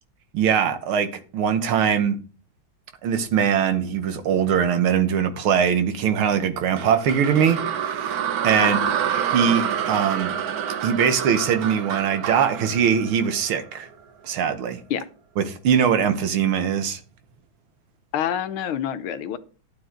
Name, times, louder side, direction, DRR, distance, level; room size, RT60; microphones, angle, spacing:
voice 1, 0.3-1.1 1.3-2.2 3.0-8.8 9.3-10.3 10.8-13.9 14.2-14.8 15.4-17.0, right 7 dB, 85° right, 2.0 m, -21 dB
sound 1, 6.8-13.9, right 8 dB, 60° right, 1.0 m, -27 dB
voice 2, 8.6-9.0 14.9-15.1 18.1-19.4, left 9 dB, 85° left, 1.7 m, -27 dB
12.0 x 7.7 x 3.8 m
omnidirectional pair, 2.3 m